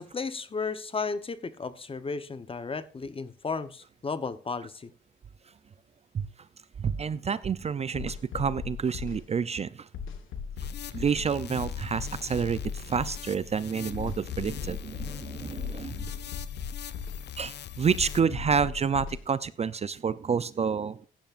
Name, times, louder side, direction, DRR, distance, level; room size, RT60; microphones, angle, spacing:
voice 1, 0.0-4.9, left 4 dB, 25° left, 13 dB, 0.9 m, -34 dB
voice 2, 6.8-9.9 10.9-16.1 17.4-21.0, right 6 dB, 30° right, 16 dB, 0.5 m, -29 dB
sound 1, 7.9-9.2 9.9-11.2 11.6-13.2 13.9-15.2 15.6-17.2 17.9-19.2, left 6 dB, 85° left, 1.4 m, -37 dB
sound 2, 10.6-18.2, left 10 dB, 60° left, 0.7 m, -42 dB
16.0 x 10.5 x 2.5 m, 0.40 s
cardioid pair, 90°, 20 cm